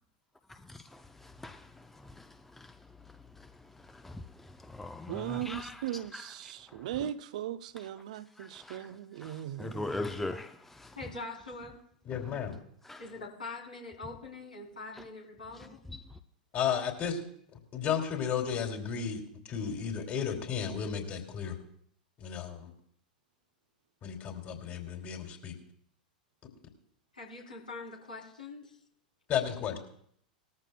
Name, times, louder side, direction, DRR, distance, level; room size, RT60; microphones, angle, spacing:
voice 1, 0.7-1.7 2.0-2.3 2.6-2.7 3.9-4.2 4.6-5.8 6.1-6.2 8.4-8.8 9.2-10.9 12.9-13.0, left 2 dB, 5° left, 0.6 m, -40 dB
voice 2, 5.1-10.3, right 12 dB, 60° right, 0.6 m, -38 dB
voice 3, 11.0-11.8 13.0-15.8 27.1-28.8, left 3 dB, 80° left, 3.6 m, -43 dB
voice 4, 12.0-12.5 16.5-17.2 17.7-19.2 19.5-21.5 22.2-22.7 24.0-25.5 29.3-29.8, left 7 dB, 35° left, 2.9 m, -33 dB
20.0 x 14.0 x 2.3 m
figure-of-eight pair, 90°, 4 cm